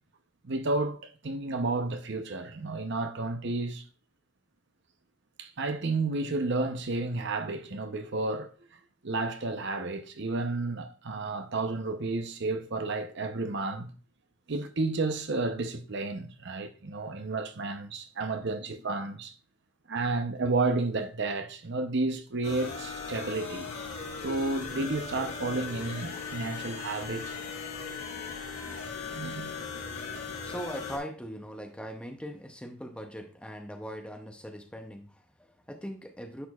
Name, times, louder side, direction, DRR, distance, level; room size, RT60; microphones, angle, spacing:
voice 1, 0.4-3.8 5.4-8.5 9.0-13.9 14.5-19.3 19.9-23.7 24.1-27.4 28.6-28.7 29.1-29.5, right 3 dB, 55° right, 0.7 m, -31 dB
sound 1, 22.4-31.0, left 5 dB, 80° left, 2.5 m, -38 dB
voice 2, 30.1-36.5, equal, 5° left, 0.6 m, -41 dB
10.0 x 6.7 x 2.4 m
head